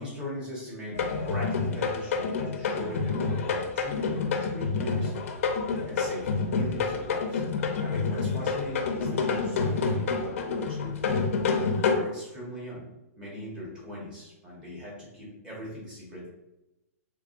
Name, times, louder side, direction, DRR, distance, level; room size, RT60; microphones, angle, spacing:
voice 1, 0.0-5.3 5.8-7.4 7.8-12.8 13.2-16.3, left 1 dB, 10° right, -6 dB, 1.2 m, -40 dB
sound 1, 0.9-11.9, left 4 dB, 55° left, 0.6 m, -28 dB
4.6 x 3.5 x 2.5 m, 0.94 s
hypercardioid pair, 170°, 8 cm